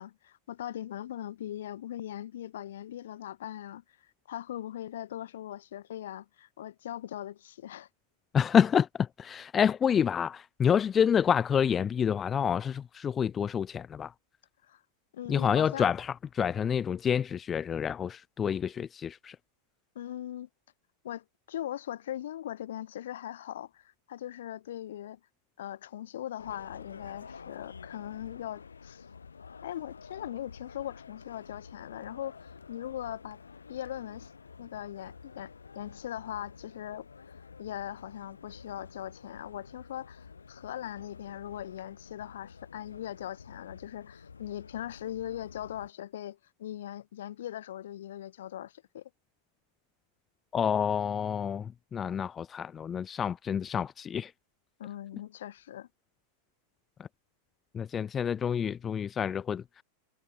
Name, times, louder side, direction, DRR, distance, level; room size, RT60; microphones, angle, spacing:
voice 1, 0.0-7.9 14.6-14.8 15.1-15.9 19.9-20.5 21.0-25.2 25.6-29.1 29.6-33.4 33.7-34.3 34.6-37.1 37.6-49.0 54.8-55.9, left 12 dB, 70° left, 2.3 m, -40 dB
voice 2, 8.3-14.1 15.3-19.4 50.5-54.3 57.7-59.6, left 8 dB, 25° left, 1.1 m, -28 dB
sound 1, 26.4-45.9, left 5 dB, 85° left, 3.2 m, -50 dB
figure-of-eight pair, 90°, 0 cm